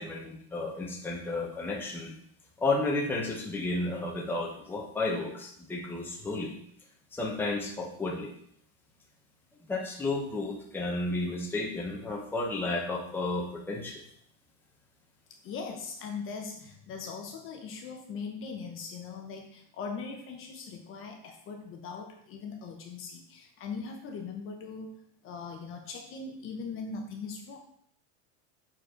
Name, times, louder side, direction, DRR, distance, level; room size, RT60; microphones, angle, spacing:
voice 1, 0.0-2.1 2.6-6.5 7.1-8.3 9.7-14.0, left 2 dB, 5° left, -2 dB, 0.9 m, -32 dB
voice 2, 15.4-27.6, left 5 dB, 35° left, 4 dB, 0.9 m, -40 dB
7.3 x 4.4 x 5.1 m, 0.65 s
supercardioid pair, 160°, 39 cm